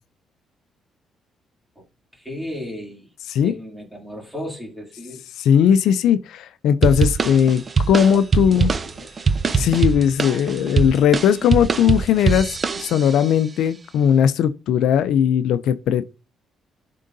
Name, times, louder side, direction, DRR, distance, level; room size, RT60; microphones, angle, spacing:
voice 1, 2.1-3.1 3.4-5.2 8.5-9.1, left 1 dB, 5° right, 2.8 m, -35 dB
voice 2, 5.4-8.7 9.6-16.1, left 8 dB, 80° left, 0.3 m, -18 dB
sound 1, 6.8-13.3, right 4 dB, 35° right, 0.5 m, -22 dB
10.0 x 3.7 x 2.6 m
cardioid pair, 90°, 0 cm